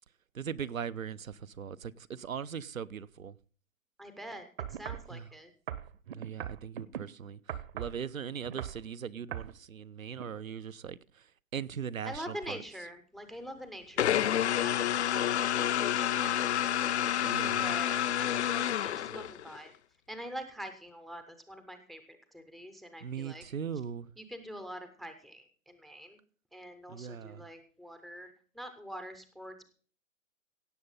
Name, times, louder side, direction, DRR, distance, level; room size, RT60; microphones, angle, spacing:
voice 1, 0.3-3.3 5.1-5.3 6.1-11.2 11.5-12.6 17.2-17.7 23.0-24.1 26.9-27.5, right 7 dB, 85° right, 0.8 m, -40 dB
voice 2, 4.0-4.4 4.7-5.5 12.0-16.4 16.7-19.7 20.1-23.4 24.2-26.2 26.5-29.6, equal, ahead, 0.5 m, -45 dB
sound 1, 4.6-5.1 5.7-7.0 7.5-8.0 8.4-8.8 9.3-9.5 10.2-10.3, right 10 dB, 45° right, 1.0 m, -39 dB
sound 2, 14.0-19.6, left 10 dB, 55° left, 0.7 m, -29 dB
17.0 x 6.9 x 5.5 m
hypercardioid pair, 135°, 40 cm